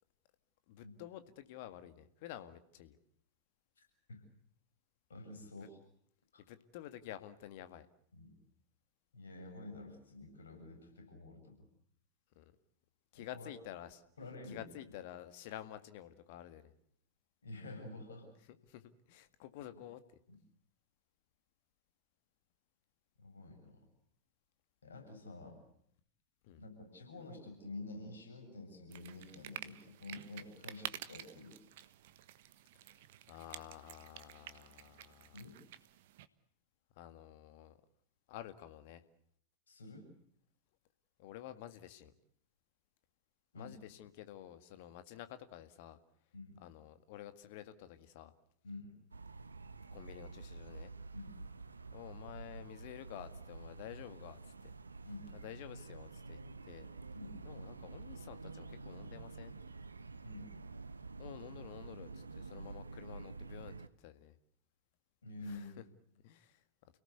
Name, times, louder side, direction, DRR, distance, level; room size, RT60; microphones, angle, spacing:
voice 1, 0.7-3.0 5.6-5.7 6.5-7.9 9.4-9.5 12.4-12.5 13.1-14.0 14.5-16.7 18.6-20.2 26.4-26.6 33.3-35.4 37.0-37.8 38.3-39.0 41.2-42.1 43.5-46.0 46.6-48.3 49.9-50.9 51.9-54.7 55.3-56.9 57.4-59.5 61.2-64.3 65.4-65.8 66.2-66.6, left 12 dB, 50° left, 11 dB, 1.9 m, -50 dB
voice 2, 5.1-5.8 6.3-6.4 8.1-8.4 9.1-11.7 13.1-13.5 14.2-14.7 17.4-18.3 20.3-20.4 23.2-23.8 24.8-25.6 26.6-31.6 35.3-35.6 39.7-40.1 43.5-43.8 46.3-46.6 48.6-48.9 51.1-51.4 55.0-55.3 57.1-57.4 60.2-60.6 65.2-65.8, left 2 dB, 70° left, 4 dB, 7.5 m, -49 dB
sound 1, 28.9-36.3, right 13 dB, 55° right, 1.3 m, -50 dB
sound 2, 49.1-63.9, right 3 dB, 75° right, 1.0 m, -49 dB
29.5 x 18.5 x 8.2 m, 0.68 s
figure-of-eight pair, 90°, 0 cm